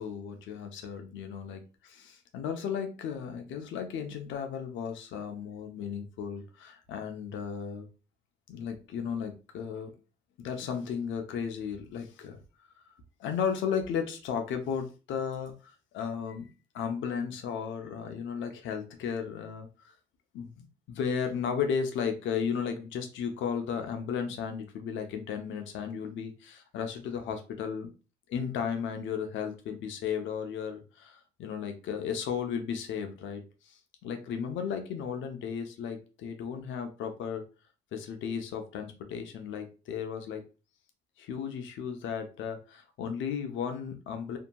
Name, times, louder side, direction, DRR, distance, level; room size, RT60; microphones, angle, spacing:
voice 1, 0.0-7.9 8.5-9.9 10.4-12.4 13.2-16.5 16.7-19.9 20.3-20.6 20.9-27.9 28.3-37.4 37.9-40.4 41.2-44.4, left 7 dB, 80° left, 5 dB, 0.6 m, -35 dB
2.7 x 2.6 x 2.2 m, 0.33 s
cardioid pair, 80°, 20 cm